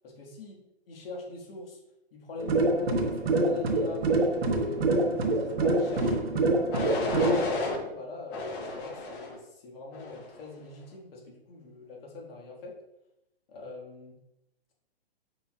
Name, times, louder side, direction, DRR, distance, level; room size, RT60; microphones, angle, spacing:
voice 1, 0.0-0.5 0.9-1.8 2.1-4.0 4.3-6.5 6.9-12.7 13.5-14.1, left 3 dB, 65° left, -1 dB, 1.5 m, -43 dB
sound 1, 2.4-7.5, right 2 dB, 70° right, 1.0 m, -26 dB
sound 2, 5.8-6.2 6.7-7.8 8.3-9.4 9.9-10.4, left 2 dB, 20° left, 0.6 m, -33 dB
5.5 x 4.2 x 2.2 m, 0.85 s
hypercardioid pair, 145°, 32 cm